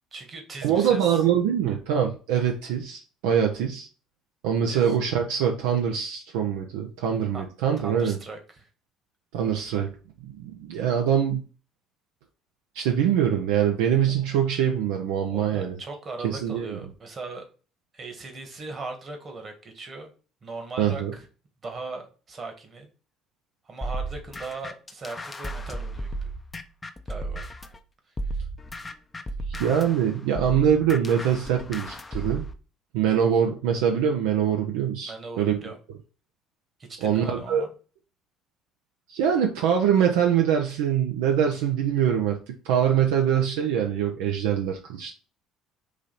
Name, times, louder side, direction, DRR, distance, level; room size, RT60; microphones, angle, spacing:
voice 1, 0.1-1.1 4.7-4.9 7.3-7.5 7.8-8.7 15.3-17.4 17.9-20.1 20.4-21.3 21.6-22.9 23.6-26.3 27.0-27.5 28.3-28.5 35.1-35.8 36.8-37.7, right 3 dB, 40° right, 1.4 m, -39 dB
voice 2, 0.6-3.9 4.4-8.2 9.3-9.9 10.2-11.4 12.7-15.8 16.2-16.8 20.8-21.1 29.5-32.4 32.9-35.1 35.4-35.6 37.0-37.7 39.1-45.1, right 8 dB, 75° right, 0.5 m, -24 dB
sound 1, 23.8-27.8 28.2-32.5, right 1 dB, 25° left, 0.6 m, -34 dB
4.9 x 2.7 x 4.0 m
hypercardioid pair, 60°, 0 cm